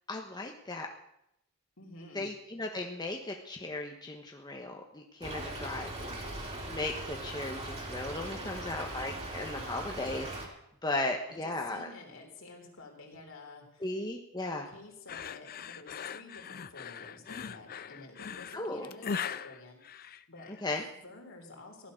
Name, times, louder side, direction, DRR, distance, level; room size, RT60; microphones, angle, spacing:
voice 1, 0.1-0.9 2.1-10.5 10.8-11.9 13.8-14.7 18.5-18.9 20.6-20.8, left 2 dB, 20° left, 2 dB, 1.1 m, -36 dB
voice 2, 1.8-2.3 8.4-8.8 11.4-13.9 14.4-20.5 21.0-21.9, left 2 dB, 65° left, 1 dB, 3.6 m, -50 dB
Stream / Trickle dribble, 5.2-10.5, right 1 dB, 30° right, 2.9 m, -40 dB
sound 1, 15.1-20.6, left 7 dB, 45° left, 0.5 m, -40 dB
15.5 x 11.5 x 6.4 m, 0.80 s
head